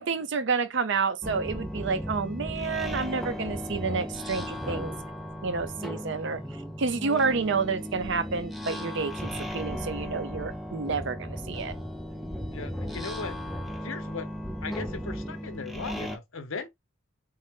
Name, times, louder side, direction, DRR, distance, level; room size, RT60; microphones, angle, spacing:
voice 1, 0.0-4.9 5.4-6.4 6.8-11.7, right 4 dB, 55° right, 0.5 m, -29 dB
sound 1, 1.2-16.2, equal, ahead, 0.4 m, -36 dB
voice 2, 12.5-13.4 13.8-14.3 14.6-16.7, left 4 dB, 70° left, 0.8 m, -38 dB
4.0 x 2.1 x 3.5 m
head